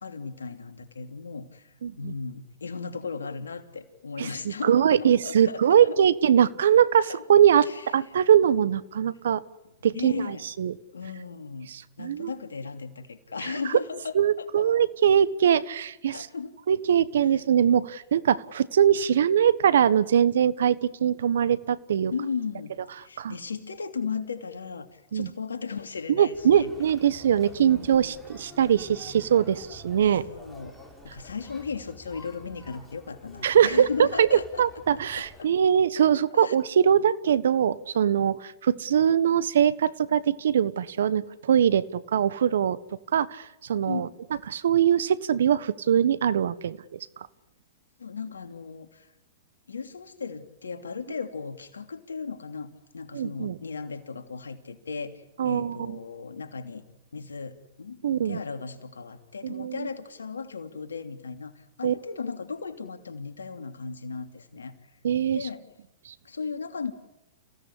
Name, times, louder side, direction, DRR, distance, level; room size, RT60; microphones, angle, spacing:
voice 1, 0.0-6.0 7.0-7.2 7.6-8.1 9.9-10.5 10.9-14.7 16.1-16.5 17.2-17.4 22.1-26.7 27.5-27.9 30.1-30.8 31.0-34.6 35.1-35.5 36.3-36.5 43.8-44.2 48.0-49.1 49.7-56.8 57.1-64.8 65.3-65.7 66.2-66.9, left 5 dB, 90° left, 7 dB, 2.8 m, -36 dB
voice 2, 1.8-2.1 4.2-9.4 9.8-10.7 11.7-12.3 14.1-16.3 16.7-22.1 23.2-23.4 25.1-25.3 26.1-30.2 33.4-34.3 34.6-42.8 43.1-44.1 44.5-47.0 53.1-53.5 55.4-56.0 58.0-58.4 59.4-59.9 61.8-61.9 65.0-65.5 66.0-66.1, right 9 dB, 75° right, 17 dB, 1.3 m, -22 dB
Conversation, 26.3-35.4, left 1 dB, ahead, 7.6 m, -48 dB
29.0 x 17.0 x 10.0 m, 0.90 s
hypercardioid pair, 115°, 0 cm